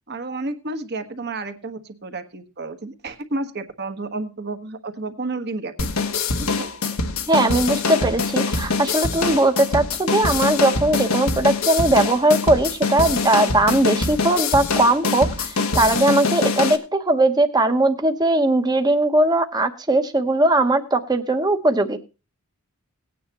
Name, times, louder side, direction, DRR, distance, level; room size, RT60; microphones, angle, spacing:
voice 1, 0.1-5.9 6.4-6.7, right 2 dB, 50° right, 8 dB, 1.4 m, -31 dB
sound 1, 5.8-16.8, left 4 dB, 80° left, 1.4 m, -24 dB
voice 2, 7.3-22.0, right 2 dB, 20° right, 7 dB, 1.0 m, -19 dB
18.5 x 9.3 x 3.0 m, 0.31 s
head